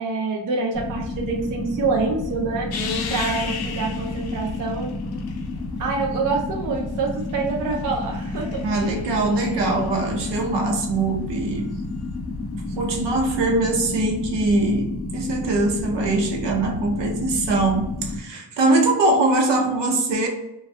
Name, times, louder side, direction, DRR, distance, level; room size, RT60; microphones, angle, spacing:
voice 1, 0.0-2.7 3.1-4.9 5.8-8.6, right 4 dB, 50° right, 0 dB, 0.5 m, -26 dB
sound 1, 0.7-18.2, left 2 dB, 20° left, 0.7 m, -31 dB
sound 2, 2.7-5.8 6.9-10.4 12.7-12.8, left 5 dB, 60° left, 0.5 m, -35 dB
voice 2, 8.6-11.7 12.8-20.3, right 2 dB, 75° right, 1 dB, 0.8 m, -22 dB
2.6 x 2.3 x 3.2 m, 0.90 s
wide cardioid pair, 170°, 44 cm